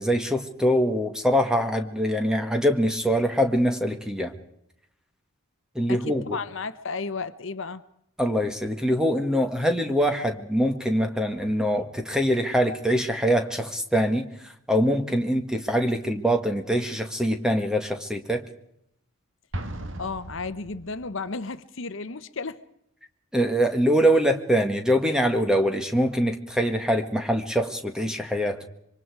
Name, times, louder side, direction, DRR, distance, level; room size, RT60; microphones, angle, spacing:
voice 1, 0.0-4.3 5.7-6.4 8.2-18.4 23.3-28.6, equal, 5° right, 1.7 m, -24 dB
voice 2, 5.9-7.8 20.0-22.6, left 4 dB, 65° left, 0.9 m, -33 dB
Explosion, 19.5-21.2, right 1 dB, 60° right, 1.6 m, -37 dB
26.5 x 24.5 x 4.8 m
head